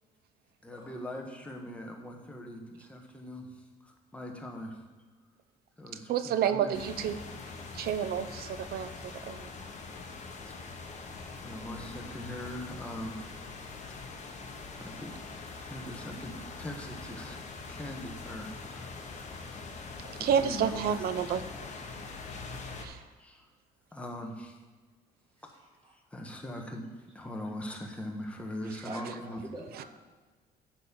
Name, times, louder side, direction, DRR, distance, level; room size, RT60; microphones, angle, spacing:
voice 1, 0.6-4.8 5.8-6.8 11.4-13.4 13.9-14.1 14.8-15.2 15.6-17.4 17.7-18.9 20.2-21.1 23.2-23.5 23.9-24.6 25.4-25.5 26.1-26.9 27.1-29.5, left 1 dB, 5° left, 1 dB, 1.5 m, -41 dB
voice 2, 6.1-7.2 7.7-9.5 20.1-21.4 22.8-23.0 29.8-29.9, right 8 dB, 65° right, 11 dB, 0.7 m, -30 dB
sound 1, 6.7-22.9, left 4 dB, 45° left, 1.4 m, -43 dB
voice 3, 25.4-25.9 28.8-29.8, right 2 dB, 25° right, -5 dB, 1.8 m, -45 dB
11.5 x 4.4 x 7.2 m, 1.4 s
cardioid pair, 110°, 17 cm